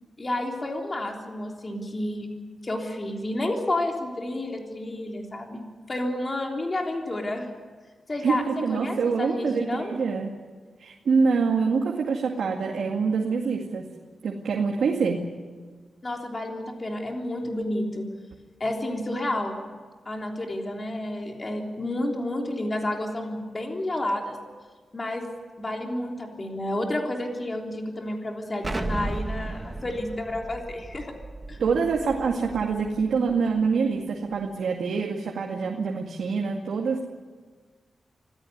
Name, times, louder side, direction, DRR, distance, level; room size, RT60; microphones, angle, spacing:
voice 1, 0.2-2.3 2.6-5.6 5.9-7.5 8.1-8.4 8.7-9.9 16.0-18.1 18.6-19.7 20.1-24.4 24.9-25.3 25.6-31.1 31.5-31.6, left 1 dB, 30° left, 1 dB, 3.5 m, -30 dB
voice 2, 8.2-10.3 10.8-13.9 14.2-15.2 31.6-37.0, right 5 dB, 85° right, 1 dB, 2.2 m, -25 dB
Explosion, 28.6-33.3, right 2 dB, 20° right, 1.4 m, -35 dB
26.0 x 16.0 x 9.6 m, 1.5 s
wide cardioid pair, 120°, 0 cm